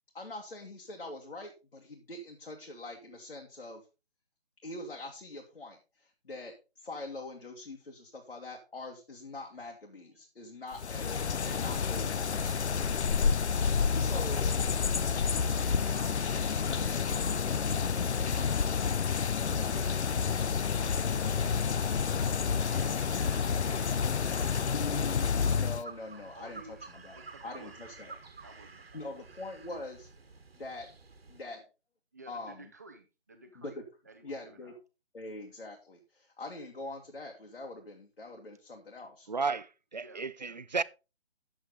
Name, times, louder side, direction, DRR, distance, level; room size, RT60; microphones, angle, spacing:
voice 1, 0.1-3.8 4.6-12.6 13.9-14.6 24.7-28.1 28.9-30.1 30.5-30.9 31.3-31.6 32.3-32.7 33.6-33.8 34.2-34.7 35.1-39.3, left 2 dB, 65° left, 2.2 m, -43 dB
sound 1, 10.7-25.8, left 6 dB, 80° left, 0.6 m, -29 dB
voice 2, 14.1-14.9 15.3-19.0 19.6-20.0 20.5-24.9 26.4-29.2 32.1-34.8 40.0-40.6, right 3 dB, 15° right, 0.7 m, -54 dB
sound 2, 18.7-31.4, right 4 dB, 65° right, 1.5 m, -52 dB
voice 3, 39.3-40.8, right 4 dB, 40° right, 0.5 m, -33 dB
10.0 x 7.9 x 4.0 m
figure-of-eight pair, 160°, 33 cm